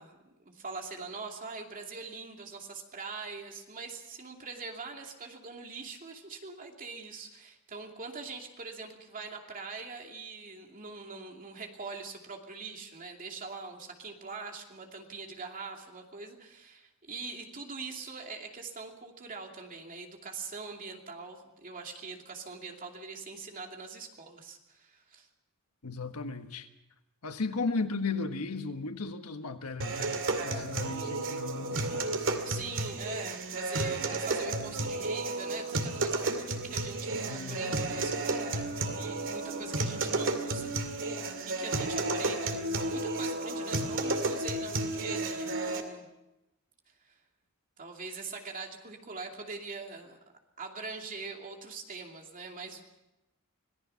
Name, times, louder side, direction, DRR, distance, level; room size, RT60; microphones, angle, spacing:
voice 1, 0.0-25.3 32.4-46.1 47.0-47.2 47.8-50.2 50.6-52.8, right 4 dB, 40° right, 2.6 m, -43 dB
voice 2, 25.8-26.7 27.2-32.4 37.1-37.8, left 3 dB, 80° left, 1.4 m, -36 dB
sound 1, 29.8-45.8, right 2 dB, 60° right, 2.4 m, -32 dB
26.0 x 18.0 x 5.8 m
head